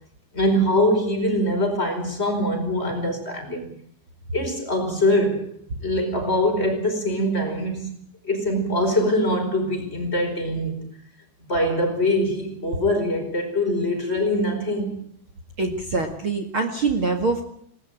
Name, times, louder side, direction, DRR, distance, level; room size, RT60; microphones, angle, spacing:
voice 1, 0.3-3.7 4.3-5.5 5.8-10.9 11.5-15.0, left 1 dB, 15° left, 4 dB, 4.7 m, -23 dB
voice 2, 15.6-17.4, right 3 dB, 45° right, 5 dB, 1.8 m, -24 dB
19.5 x 18.5 x 9.0 m, 0.65 s
omnidirectional pair, 5.2 m